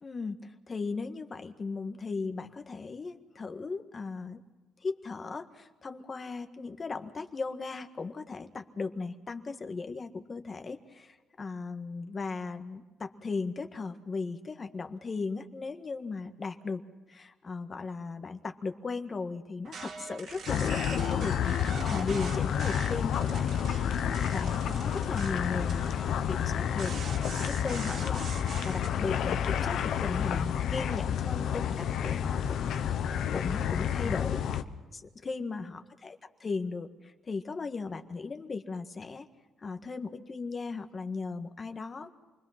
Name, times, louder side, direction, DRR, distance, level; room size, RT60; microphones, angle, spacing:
voice 1, 0.0-4.4 4.8-16.8 17.1-23.5 24.2-28.3 28.6-34.4 34.9-39.3 39.6-42.1, left 4 dB, 35° left, 7 dB, 1.7 m, -37 dB
sound 1, 19.6-28.9, right 5 dB, 70° right, 3.1 m, -44 dB
sound 2, 20.5-34.6, left 8 dB, 75° left, 1.1 m, -30 dB
28.5 x 21.5 x 6.0 m, 1.2 s
cardioid pair, 90°, 0 cm